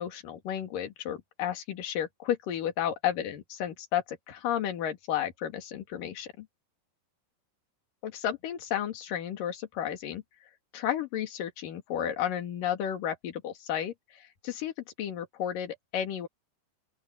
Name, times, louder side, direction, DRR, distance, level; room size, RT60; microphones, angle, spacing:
voice 1, 0.0-6.5 8.0-10.2 10.7-16.3, left 10 dB, 55° left, 3.5 m, -33 dB
open air
omnidirectional pair, 5.2 m